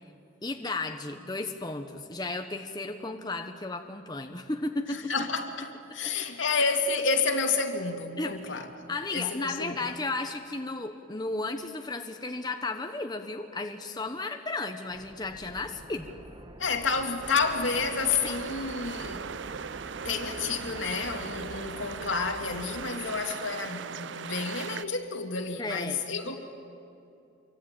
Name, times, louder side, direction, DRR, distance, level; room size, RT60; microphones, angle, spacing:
voice 1, 0.4-5.1 6.0-6.1 8.2-8.6 8.9-16.1 18.2-18.4 25.6-26.0, left 2 dB, 20° left, 5 dB, 1.1 m, -34 dB
voice 2, 4.9-9.8 16.6-19.3 20.0-26.4, left 4 dB, 75° left, 4 dB, 2.5 m, -30 dB
sound 1, 14.9-22.9, right 1 dB, 25° right, 1.2 m, -47 dB
sound 2, 17.2-24.8, right 6 dB, 65° right, 0.6 m, -39 dB
26.5 x 24.0 x 9.1 m, 2.8 s
head